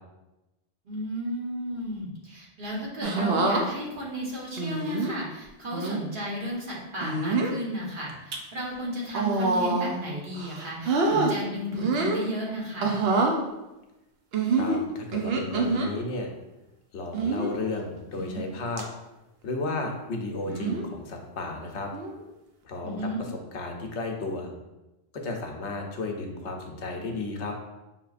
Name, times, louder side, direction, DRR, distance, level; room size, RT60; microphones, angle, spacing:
voice 1, 0.8-13.0 22.8-23.2, equal, 50° right, -4 dB, 1.1 m, -34 dB
sound 1, 3.0-3.6 4.6-5.1 5.7-6.0 7.0-7.6 8.1-8.4 9.1-10.0 10.4-11.3 11.7-12.2 12.8-13.4 14.3-15.9 17.1-17.6 18.2-18.5 18.8-18.9 20.5-20.9 21.9-22.2, right 3 dB, 65° right, 0.8 m, -26 dB
voice 2, 14.6-16.3 16.9-18.8 19.4-21.9 22.6-23.3 23.5-24.5 25.2-27.5, left 3 dB, 80° left, 2 dB, 1.0 m, -33 dB
5.6 x 2.9 x 2.4 m, 1.0 s
omnidirectional pair, 1.2 m